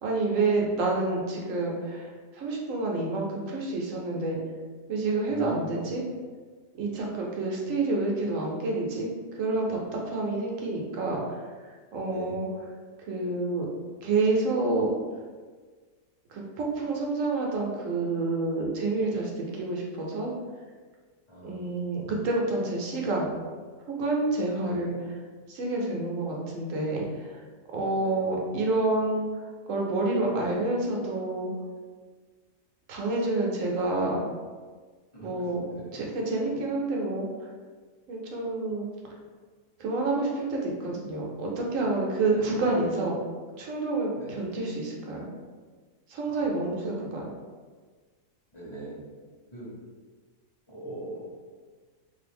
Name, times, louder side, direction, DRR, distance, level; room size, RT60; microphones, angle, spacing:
voice 1, 0.0-2.1 2.3-4.4 4.9-6.0 6.7-11.4 11.9-12.5 13.1-13.7 14.0-15.0 16.3-20.3 21.4-23.3 23.9-25.1 25.5-27.4 27.7-29.3 29.7-31.5 32.9-34.2 35.2-35.6 35.9-37.3 38.1-38.9 39.8-43.2 43.6-45.3 46.1-47.3, right 2 dB, 65° right, -1 dB, 0.9 m, -28 dB
voice 2, 5.3-5.7 12.1-12.4 21.3-21.7 24.6-24.9 28.0-28.3 35.1-35.3 35.6-36.0 42.3-42.7 44.2-44.5 46.3-46.7 48.5-49.1 49.5-49.7 50.7-51.5, right 1 dB, 25° left, -9 dB, 0.8 m, -41 dB
2.7 x 2.6 x 3.4 m, 1.5 s
omnidirectional pair, 1.7 m